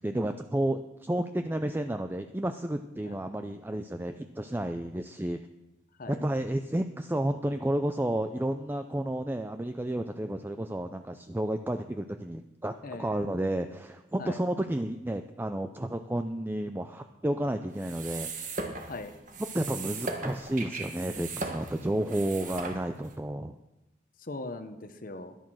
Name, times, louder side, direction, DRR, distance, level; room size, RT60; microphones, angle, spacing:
voice 1, 0.0-5.4 6.1-18.3 19.5-23.6, right 1 dB, 10° right, 8 dB, 0.4 m, -31 dB
voice 2, 12.8-13.3 14.2-14.4 18.9-19.2 24.2-25.3, left 2 dB, 50° left, 10 dB, 1.0 m, -40 dB
sound 1, 17.7-23.1, right 3 dB, 45° right, 1.6 m, -38 dB
13.0 x 11.0 x 6.2 m, 0.99 s
head